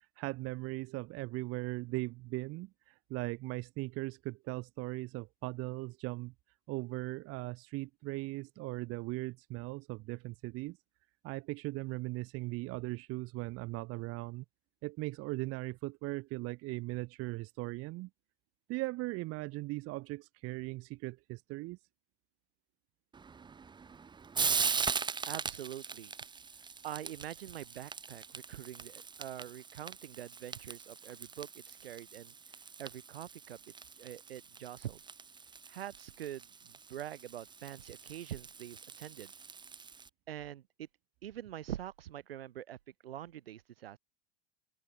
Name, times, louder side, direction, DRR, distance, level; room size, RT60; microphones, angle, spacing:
voice 1, 0.2-6.3 6.7-10.8 11.2-14.4 14.8-18.1 18.7-21.8, right 21 dB, 50° right, 1.3 m, -39 dB
Frying (food), 23.1-40.1, right 5 dB, 15° right, 0.7 m, -40 dB
voice 2, 25.3-26.1 26.8-32.3 32.8-33.6 33.9-35.0 35.7-39.3 40.3-40.9 41.2-42.8 43.0-44.0, right 11 dB, 80° right, 2.7 m, -44 dB
open air
hypercardioid pair, 80°, 29 cm